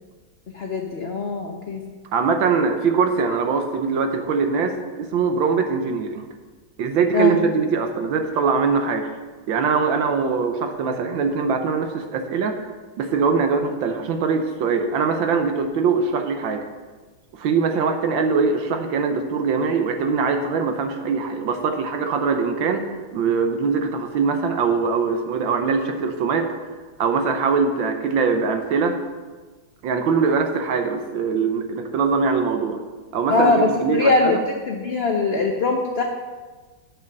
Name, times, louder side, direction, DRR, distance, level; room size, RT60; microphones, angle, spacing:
voice 1, 0.5-1.8 7.1-7.4 33.3-34.4 34.7-36.0, left 3 dB, 45° left, 1 dB, 0.8 m, -21 dB
voice 2, 2.1-6.3 6.8-9.1 9.5-12.7 13.0-16.7 17.3-22.8 23.1-26.5 27.0-29.0 29.8-32.8 33.1-34.4, right 5 dB, 80° right, 5 dB, 1.6 m, -22 dB
9.1 x 6.4 x 6.6 m, 1.3 s
omnidirectional pair, 2.1 m